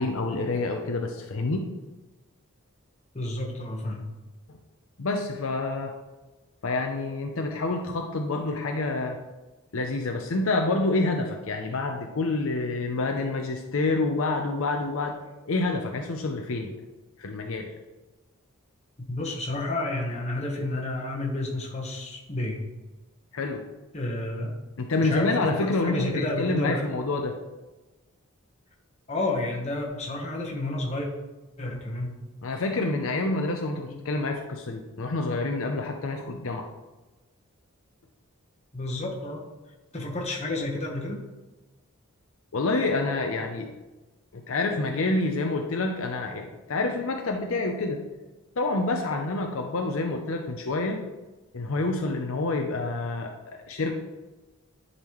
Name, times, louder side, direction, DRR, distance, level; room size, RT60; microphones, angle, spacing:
voice 1, 0.0-1.7 5.0-5.9 6.6-9.2 9.7-15.2 15.5-16.7 17.2-17.7 23.3-23.7 24.8-27.3 32.4-36.7 42.5-43.7 44.3-48.0 48.6-51.0 51.5-53.9, left 2 dB, 65° left, 3 dB, 0.6 m, -28 dB
voice 2, 3.1-4.0 19.1-22.6 23.9-24.6 25.0-26.9 29.1-31.1 31.6-32.2 33.9-34.0 38.7-39.5 39.9-41.2, left 2 dB, 30° left, -1 dB, 1.2 m, -30 dB
10.0 x 4.1 x 3.1 m, 1.1 s
head